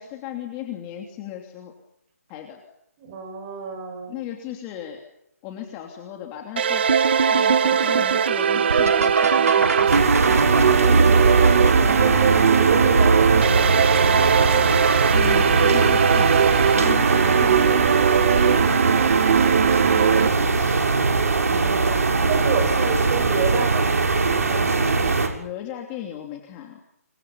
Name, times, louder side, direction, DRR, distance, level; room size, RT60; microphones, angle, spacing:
voice 1, 0.0-1.7 2.3-2.6 4.1-5.0 5.4-6.8 7.3-10.1 15.1-16.4 16.7-17.8 18.3-18.9 19.7-20.8 25.3-26.8, left 11 dB, 20° left, 2 dB, 2.9 m, -36 dB
voice 2, 3.0-4.1 11.1-13.7 21.4-22.0 22.3-24.0 24.4-24.7, right 5 dB, 25° right, 5 dB, 6.2 m, -29 dB
sound 1, 6.6-20.3, right 8 dB, 40° right, 1.4 m, -20 dB
sound 2, 6.9-14.6 15.2-15.8 16.2-16.9 18.1-18.2 18.9-19.3 21.4-21.5 23.9-24.0, right 3 dB, 85° right, 2.8 m, -23 dB
sound 3, 9.9-25.3, right 4 dB, 70° right, 6.8 m, -21 dB
27.5 x 27.5 x 5.6 m, 0.76 s
hypercardioid pair, 160°, 8 cm